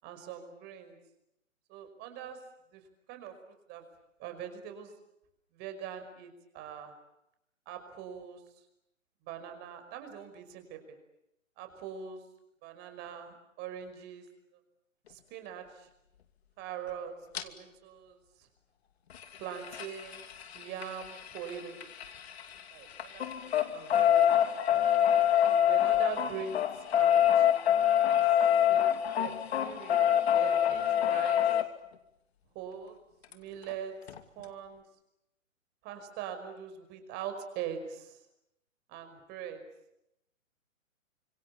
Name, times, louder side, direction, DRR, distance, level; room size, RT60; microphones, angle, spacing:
voice 1, 0.0-1.0 1.7-2.4 2.7-2.8 3.1-3.3 3.7-3.9 4.2-4.9 5.5-7.0 7.7-8.4 9.2-11.0 11.6-12.2 12.6-14.2 15.1-15.9 16.6-17.1 17.4-18.5 19.4-20.2 20.5-21.9 22.7-24.5 24.7-24.8 25.6-27.5 28.7-28.8 29.2-29.3 29.6-31.5 32.5-33.0 33.3-34.0 34.4-34.8 35.8-38.2 38.9-39.6, right 8 dB, 25° right, 7 dB, 5.5 m, -42 dB
sound 1, 17.3-17.4 19.1-22.6 22.9-31.6 33.3-33.4 33.7-33.8 34.1-34.2, left 10 dB, 50° left, 2.8 m, -26 dB
30.0 x 26.5 x 7.2 m, 0.84 s
figure-of-eight pair, 135°, 39 cm